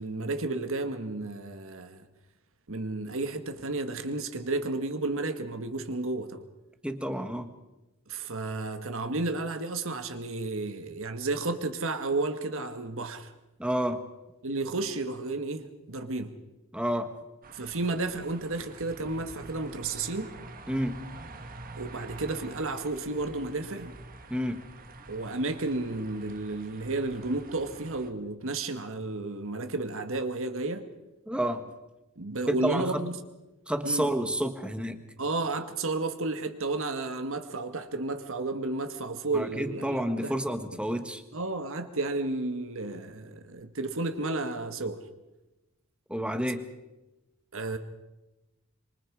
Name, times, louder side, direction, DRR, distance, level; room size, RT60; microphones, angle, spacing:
voice 1, 0.0-2.1 2.7-6.4 8.1-13.3 14.4-16.3 17.5-20.3 21.8-23.9 25.1-30.9 32.2-33.1 33.8-34.1 35.2-40.3 41.3-45.0 47.5-47.8, right 2 dB, 65° right, 1.7 m, -32 dB
voice 2, 6.8-7.5 13.6-14.0 16.7-17.1 20.7-21.0 24.3-24.6 31.3-31.7 32.5-33.0 33.7-35.0 39.3-41.2 46.1-46.7, equal, 5° right, 1.4 m, -29 dB
sound 1, 17.4-28.1, right 2 dB, 40° right, 1.6 m, -46 dB
26.0 x 24.5 x 4.9 m
head